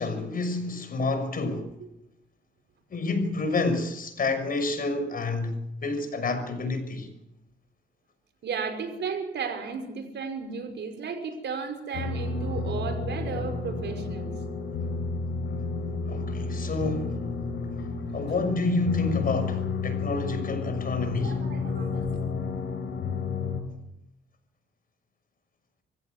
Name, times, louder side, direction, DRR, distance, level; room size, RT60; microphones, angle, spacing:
voice 1, 0.0-1.7 2.9-7.1 16.1-17.2 18.1-21.4, left 3 dB, 45° left, 6.0 m, -29 dB
voice 2, 8.4-14.3 18.1-18.2 21.2-22.2, right 5 dB, 60° right, 5.5 m, -34 dB
sound 1, 11.9-23.6, left 4 dB, 75° left, 5.4 m, -31 dB
25.0 x 16.0 x 8.1 m
cardioid pair, 90°, 20 cm